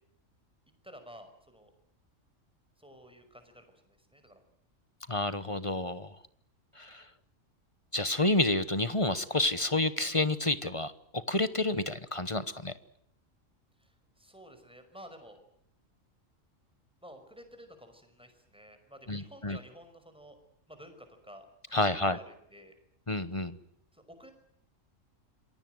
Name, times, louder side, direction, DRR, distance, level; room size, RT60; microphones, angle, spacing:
voice 1, 0.8-1.7 2.8-4.4 13.8-15.4 17.0-20.4 20.7-22.7 23.9-24.3, equal, 5° right, 7 dB, 5.5 m, -52 dB
voice 2, 5.1-6.1 6.8-7.0 7.9-12.7 19.1-19.6 21.7-22.2 23.1-23.6, left 2 dB, 25° left, 13 dB, 1.1 m, -29 dB
27.5 x 22.5 x 7.9 m, 0.71 s
omnidirectional pair, 1.3 m